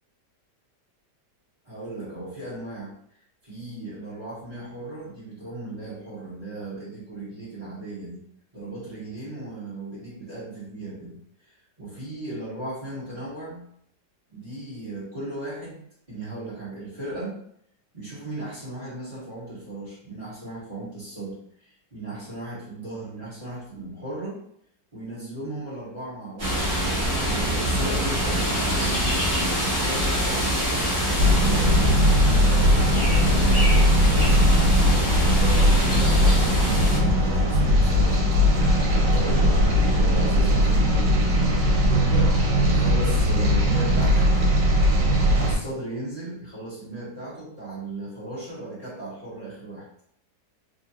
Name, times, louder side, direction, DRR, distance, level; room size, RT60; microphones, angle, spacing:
voice 1, 1.6-2.9 3.4-8.2 8.5-13.6 14.3-15.8 16.1-17.4 17.9-24.4 24.9-26.7 27.2-29.2 29.6-30.6 31.5-34.8 35.3-38.4 39.0-41.5 41.9-42.4 42.6-44.4 45.1-49.9, right 2 dB, 20° right, -10 dB, 1.5 m, -36 dB
sound 1, 26.4-37.0, equal, 40° right, 1.4 m, -25 dB
sound 2, 31.2-45.6, equal, 85° right, 1.6 m, -19 dB
3.8 x 2.4 x 2.8 m, 0.70 s
omnidirectional pair, 1.8 m